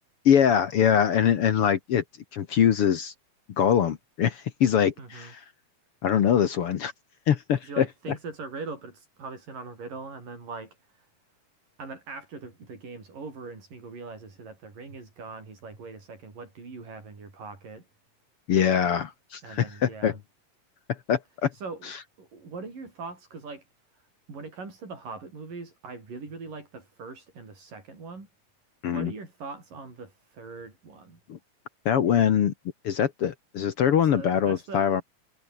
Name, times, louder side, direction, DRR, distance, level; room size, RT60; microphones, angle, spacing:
voice 1, 0.3-2.0 2.3-3.1 3.6-5.3 6.0-6.9 7.3-7.9 18.5-20.1 20.9-21.5 28.8-29.1 31.3-31.4 31.9-32.5 32.8-35.0, left 8 dB, 55° left, 1.8 m, -23 dB
voice 2, 5.0-5.3 7.6-11.1 11.8-17.9 19.4-20.2 21.5-21.9 22.2-23.7 23.9-24.0 24.3-28.3 28.9-31.2 34.0-35.0, right 4 dB, 90° right, 8.9 m, -41 dB
omnidirectional pair, 3.7 m